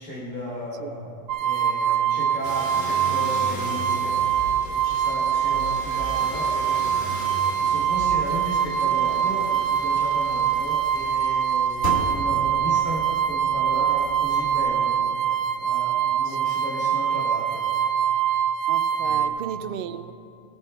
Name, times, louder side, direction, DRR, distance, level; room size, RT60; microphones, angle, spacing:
voice 1, 0.0-7.2 7.6-18.0 19.0-19.6, equal, 10° right, 2.8 m, -35 dB
sound 1, 1.3-19.3, right 8 dB, 80° right, 1.0 m, -24 dB
sound 2, 2.4-14.8, left 1 dB, 55° left, 1.7 m, -37 dB
voice 2, 18.7-20.1, right 8 dB, 60° right, 0.6 m, -34 dB
20.5 x 7.2 x 3.4 m
omnidirectional pair, 1.3 m